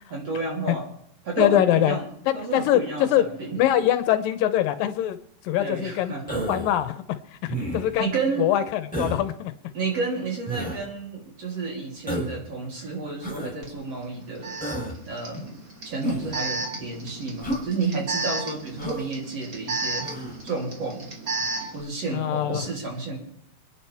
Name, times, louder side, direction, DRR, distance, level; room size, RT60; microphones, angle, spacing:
voice 1, 0.1-0.9 1.2-2.1 2.3-3.6 5.5-6.5 8.0-8.5 9.7-14.6 15.1-15.6 15.8-20.1 20.4-21.1 21.4-21.5 21.7-23.2, right 4 dB, 45° right, -1 dB, 4.1 m, -31 dB
voice 2, 1.4-2.0 2.3-3.2 3.6-5.2 5.4-6.2 6.5-7.0 7.4-8.1 8.4-9.5 22.1-22.6, left 12 dB, 80° left, 11 dB, 2.4 m, -23 dB
Human voice, 6.3-6.8 7.5-8.0 8.9-9.2 10.5-10.8 12.1-12.4 13.2-13.5 14.6-15.0 16.0-16.4 17.4-17.7 18.8-19.1 20.0-20.4, right 1 dB, ahead, 3.5 m, -30 dB
Alarm, 13.6-13.7 14.4-21.8, right 3 dB, 25° right, 2.7 m, -33 dB
28.5 x 9.9 x 3.5 m, 0.69 s
omnidirectional pair, 4.1 m